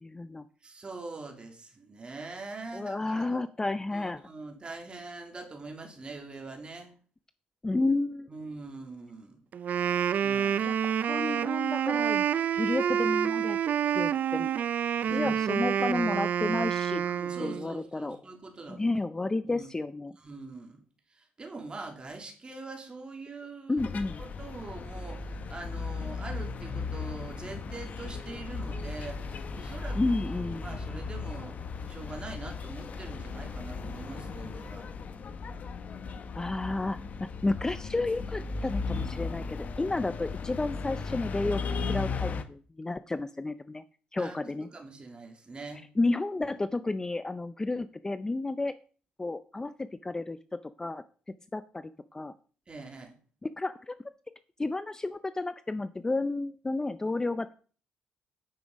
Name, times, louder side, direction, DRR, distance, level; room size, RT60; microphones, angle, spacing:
voice 1, 0.0-0.5 2.7-4.2 7.6-8.3 10.6-12.3 12.6-13.6 13.9-14.5 15.1-17.0 17.4-18.2 18.7-20.1 23.7-24.2 30.0-30.8 36.3-43.8 44.1-44.7 46.0-48.7 49.2-50.4 50.8-51.0 51.5-52.3 53.4-54.0 54.6-57.5, left 2 dB, 15° left, 13 dB, 0.5 m, -31 dB
voice 2, 0.6-3.4 3.9-6.9 8.3-9.4 10.2-10.7 15.0-15.7 17.0-18.9 19.5-19.7 20.2-20.8 21.1-23.8 24.2-30.0 30.5-31.6 31.9-34.9 44.2-45.8 52.7-53.1, right 3 dB, 30° right, 3 dB, 2.7 m, -43 dB
Wind instrument woodwind instrument, 9.5-17.7, right 9 dB, 55° right, 0.4 m, -28 dB
sound 1, 23.8-42.4, left 4 dB, 50° left, 1.0 m, -36 dB
9.5 x 6.0 x 5.2 m, 0.40 s
supercardioid pair, 80°, 3 cm